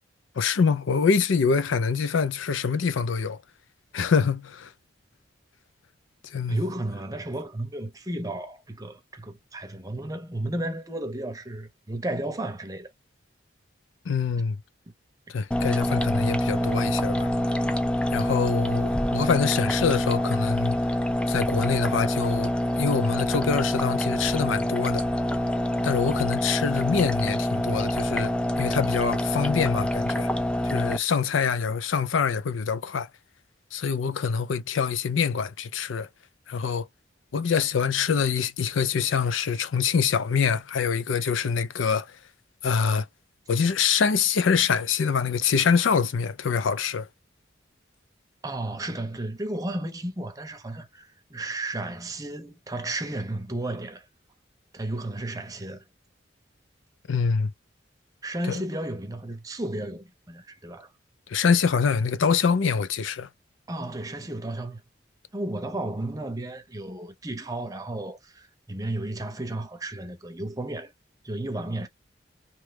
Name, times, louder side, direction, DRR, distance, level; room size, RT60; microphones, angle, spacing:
voice 1, 0.4-3.4 3.9-4.7 6.3-6.6 14.1-14.6 15.3-17.3 18.1-20.8 21.3-22.5 22.8-25.0 25.8-28.3 28.6-30.3 30.6-33.1 33.7-36.1 36.5-36.9 37.3-42.1 42.6-43.1 43.5-47.1 57.1-57.5 61.3-63.3, left 6 dB, 90° left, 0.5 m, -25 dB
voice 2, 6.5-12.9 41.1-41.3 48.4-54.1 54.7-55.8 58.2-60.9 63.7-64.8 65.3-70.9 71.2-71.9, right 1 dB, 20° right, 0.7 m, -33 dB
sound 1, 15.5-31.0, left 1 dB, 5° left, 0.3 m, -26 dB
3.0 x 2.2 x 3.3 m
head